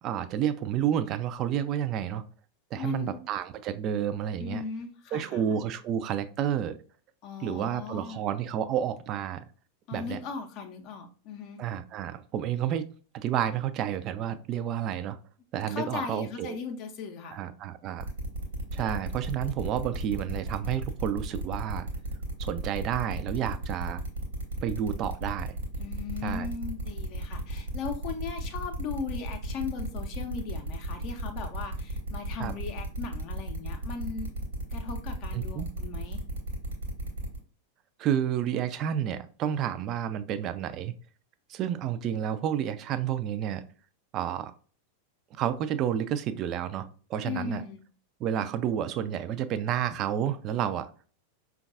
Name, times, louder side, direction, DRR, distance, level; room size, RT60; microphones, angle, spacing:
voice 1, 0.0-2.2 2.7-4.6 5.1-6.8 7.4-9.4 9.9-10.2 11.6-12.9 13.1-15.2 15.5-16.6 17.3-18.1 18.7-21.9 22.4-24.0 24.6-25.5 26.2-26.5 32.4-32.5 35.3-35.7 38.0-40.9 41.5-43.6 44.1-44.5 45.3-47.6 48.2-50.9, right 9 dB, 35° right, 12 dB, 0.3 m, -30 dB
voice 2, 2.8-3.2 4.4-5.4 7.2-8.2 9.9-11.6 15.7-17.4 25.8-34.3 34.7-36.2 47.2-47.8, left 6 dB, 40° left, 5 dB, 0.5 m, -38 dB
sound 1, 18.0-37.4, right 1 dB, 70° right, 1.1 m, -35 dB
5.1 x 2.3 x 2.4 m, 0.40 s
figure-of-eight pair, 90°, 0 cm